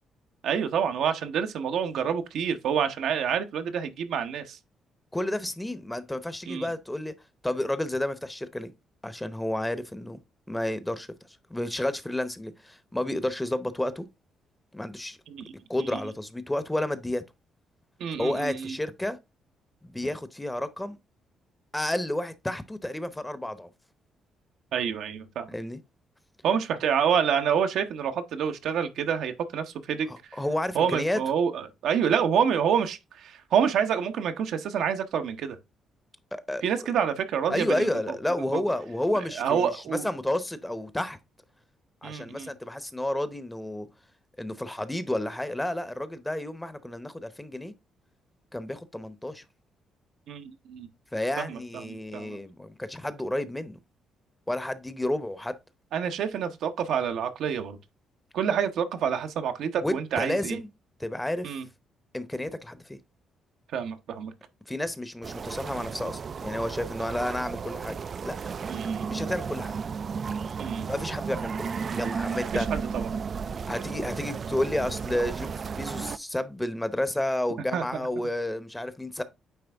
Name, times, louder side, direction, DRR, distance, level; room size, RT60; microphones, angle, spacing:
voice 1, 0.4-4.6 6.5-6.7 15.3-15.5 15.9-16.0 18.0-18.7 24.7-25.5 26.4-30.4 30.7-35.6 36.6-37.9 38.5-38.6 39.4-40.1 42.0-42.5 50.3-50.9 51.4-52.4 55.9-57.8 58.3-60.6 61.4-61.7 63.7-64.3 68.7-69.1 70.6-70.9 72.5-73.1 77.7-77.8, right 7 dB, 75° right, 0.8 m, -28 dB
voice 2, 5.1-7.1 7.4-8.7 9.0-10.2 10.5-11.1 11.5-14.1 14.7-15.2 15.7-17.2 18.2-19.2 19.8-21.0 21.7-23.7 25.5-25.8 30.1-31.2 36.3-36.6 37.5-41.2 42.0-43.9 44.4-47.7 48.5-49.4 51.1-53.8 54.5-55.5 59.8-60.7 61.0-61.5 62.1-63.0 64.7-68.4 69.1-69.8 70.9-72.7 73.7-79.2, left 1 dB, 10° left, 0.8 m, -31 dB
sound 1, 65.2-76.2, right 6 dB, 45° right, 0.3 m, -34 dB
9.1 x 3.3 x 3.4 m
cardioid pair, 90°, 0 cm